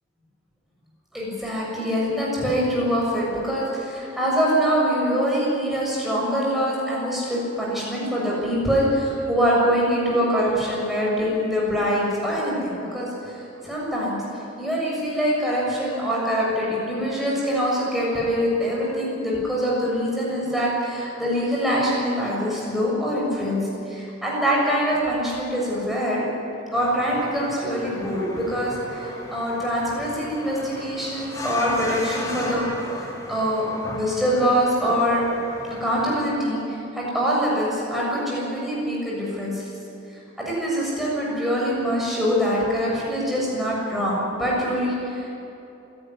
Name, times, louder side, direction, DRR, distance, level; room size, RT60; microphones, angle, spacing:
voice 1, 1.1-14.2 14.6-23.6 23.9-26.3 26.7-32.7 33.3-35.2 35.8-39.7 40.4-45.3, equal, ahead, -5 dB, 6.9 m, -24 dB
sound 1, 26.7-36.2, left 1 dB, 15° left, 2.8 m, -36 dB
27.0 x 12.0 x 9.8 m, 2.9 s
head